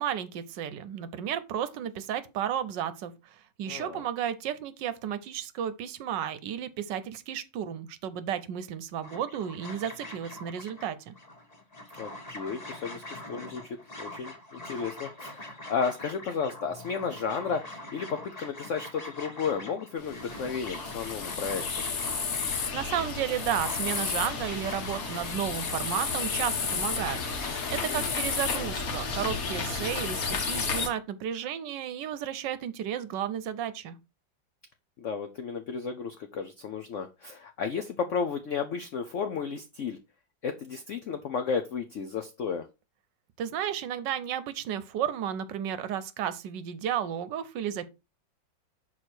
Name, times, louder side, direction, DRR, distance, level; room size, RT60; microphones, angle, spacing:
voice 1, 0.0-3.1 3.6-11.2 22.7-34.0 43.4-47.9, right 9 dB, 75° right, 1.3 m, -33 dB
voice 2, 3.7-4.0 12.0-21.6 27.7-28.1 35.0-40.0 40.4-42.7, left 6 dB, 80° left, 0.6 m, -33 dB
sound 1, 9.0-28.7, left 1 dB, 25° left, 1.2 m, -44 dB
sound 2, 20.0-30.9, left 5 dB, 55° left, 1.5 m, -32 dB
6.3 x 4.1 x 4.4 m
omnidirectional pair, 2.1 m